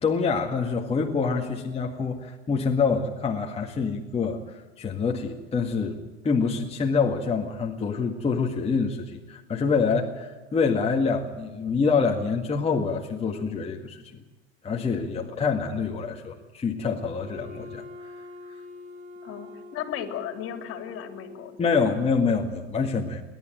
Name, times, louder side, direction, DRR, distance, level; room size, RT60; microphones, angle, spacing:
voice 1, 0.0-14.2 14.6-18.1 21.6-23.2, left 5 dB, 20° left, 0 dB, 1.9 m, -26 dB
Wind instrument woodwind instrument, 17.1-21.8, left 2 dB, 50° right, 4.3 m, -44 dB
voice 2, 19.2-22.0, left 9 dB, 45° left, 7 dB, 3.3 m, -36 dB
28.5 x 11.5 x 9.2 m, 1.2 s
supercardioid pair, 110°, 31 cm